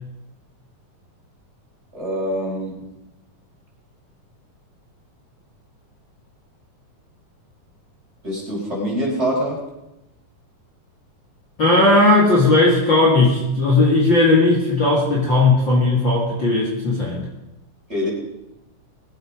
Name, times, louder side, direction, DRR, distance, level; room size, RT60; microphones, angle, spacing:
voice 1, 1.9-2.9 8.2-9.6 17.9-18.1, equal, 20° right, -4 dB, 5.3 m, -24 dB
voice 2, 11.6-17.3, left 2 dB, 40° left, -5 dB, 2.8 m, -16 dB
21.5 x 8.5 x 5.2 m, 0.93 s
omnidirectional pair, 3.7 m